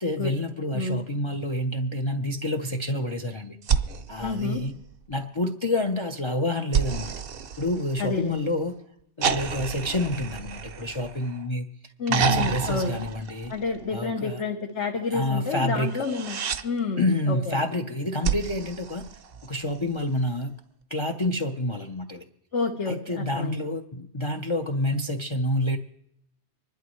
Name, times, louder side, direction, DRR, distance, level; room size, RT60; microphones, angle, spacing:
voice 1, 0.0-3.6 4.1-4.7 5.1-7.1 7.6-8.7 9.2-11.7 12.1-13.5 13.9-14.4 15.1-16.0 17.0-19.1 19.4-20.5 20.9-22.2 22.9-25.8, left 1 dB, 30° left, 5 dB, 0.6 m, -28 dB
sound 1, 3.6-5.2 6.7-8.4 9.2-11.5 12.1-13.9 15.9-16.6 18.2-19.7 21.2-21.3, right 6 dB, 60° right, 0.9 m, -30 dB
voice 2, 4.2-4.6 8.0-8.5 12.0-13.0 13.5-17.6 22.5-23.7, left 4 dB, 75° left, 0 dB, 1.5 m, -29 dB
26.0 x 11.5 x 3.1 m, 0.78 s
omnidirectional pair, 1.2 m